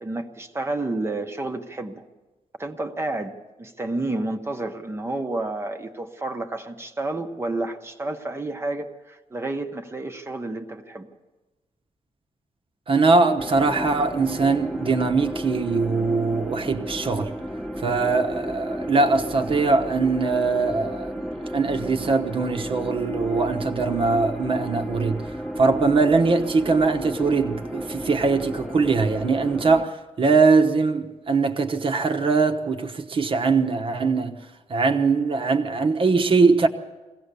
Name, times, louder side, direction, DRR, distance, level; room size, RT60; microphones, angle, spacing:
voice 1, 0.0-2.1 2.6-11.1, right 2 dB, 20° right, 1.0 m, -30 dB
voice 2, 12.9-17.3 17.8-25.3 25.6-34.4 34.7-36.7, right 4 dB, 45° right, 1.1 m, -21 dB
sound 1, 13.4-29.8, equal, ahead, 1.1 m, -33 dB
22.0 x 17.0 x 6.9 m
wide cardioid pair, 160°, 12 cm